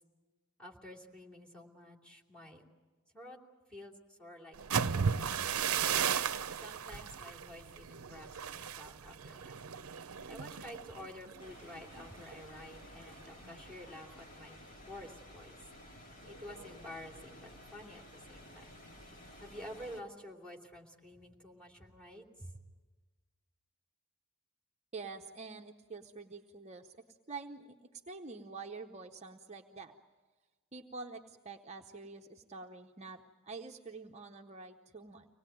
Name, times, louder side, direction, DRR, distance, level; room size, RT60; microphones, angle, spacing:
voice 1, 0.6-2.6 3.1-3.4 3.7-5.9 6.6-9.6 10.3-15.6 16.3-18.8 19.4-22.6, left 1 dB, 5° left, 1 dB, 2.9 m, -50 dB
sound 1, 4.5-12.4 12.8-13.1 13.4-13.9, right 7 dB, 80° right, 0.7 m, -35 dB
sound 2, 11.4-20.0, left 1 dB, 40° left, 2.3 m, -53 dB
voice 2, 24.9-29.9 30.7-35.3, right 4 dB, 30° right, 3 dB, 0.8 m, -47 dB
25.0 x 19.0 x 9.2 m, 1.3 s
head